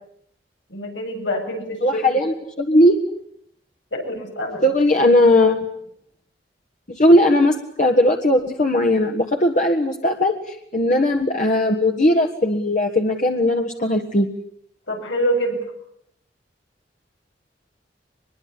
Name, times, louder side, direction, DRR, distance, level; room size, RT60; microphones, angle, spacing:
voice 1, 0.7-2.2 3.9-4.7 14.9-15.6, equal, 90° left, 3 dB, 8.0 m, -26 dB
voice 2, 1.8-3.0 4.6-5.6 6.9-14.3, left 1 dB, 45° left, 2 dB, 1.6 m, -18 dB
24.0 x 22.0 x 8.5 m, 0.71 s
head